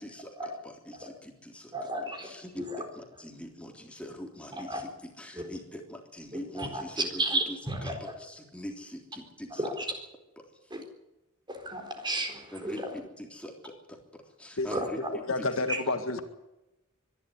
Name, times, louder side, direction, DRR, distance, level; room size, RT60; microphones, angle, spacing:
voice 1, 0.0-1.9 2.2-9.7 10.4-10.5 12.5-15.5, equal, 5° left, 2 dB, 3.5 m, -43 dB
voice 2, 1.7-2.3 2.6-2.8 4.7-4.8 6.6-6.8 7.2-7.9 9.6-9.7 10.7-10.8 11.5-12.7 14.7-14.9, right 1 dB, 20° right, 5 dB, 4.1 m, -32 dB
voice 3, 15.0-16.2, left 2 dB, 65° left, 8 dB, 1.9 m, -30 dB
24.0 x 12.0 x 9.8 m, 0.95 s
head